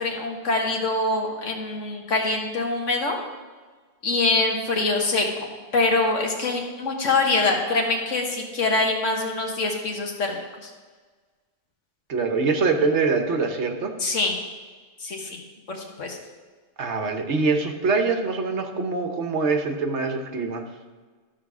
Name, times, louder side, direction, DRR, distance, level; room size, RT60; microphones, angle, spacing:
voice 1, 0.0-3.2 4.0-10.7 14.0-14.3 15.0-15.4 15.7-16.2, left 3 dB, 75° left, 1 dB, 1.8 m, -24 dB
voice 2, 12.1-13.9 16.8-20.7, right 4 dB, 65° right, 5 dB, 1.3 m, -24 dB
13.0 x 4.8 x 6.0 m, 1.4 s
omnidirectional pair, 1.3 m